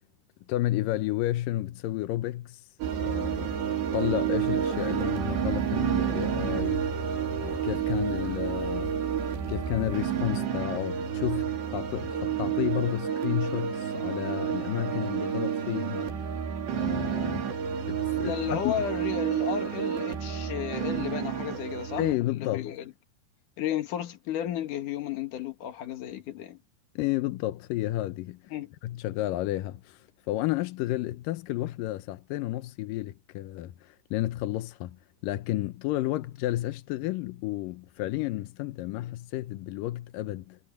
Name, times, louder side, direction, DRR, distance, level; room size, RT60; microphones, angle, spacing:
voice 1, 0.5-2.6 3.0-3.6 3.9-6.8 7.4-8.9 9.5-16.1 16.7-17.5 17.9-18.7 22.0-22.7 27.0-28.4 28.8-35.0 35.2-40.6, left 15 dB, 80° left, 2.0 m, -31 dB
sound 1, 2.8-22.1, right 8 dB, 85° right, 5.6 m, -30 dB
voice 2, 18.2-22.9 23.6-26.6 28.5-28.7, left 10 dB, 55° left, 2.9 m, -33 dB
omnidirectional pair, 4.9 m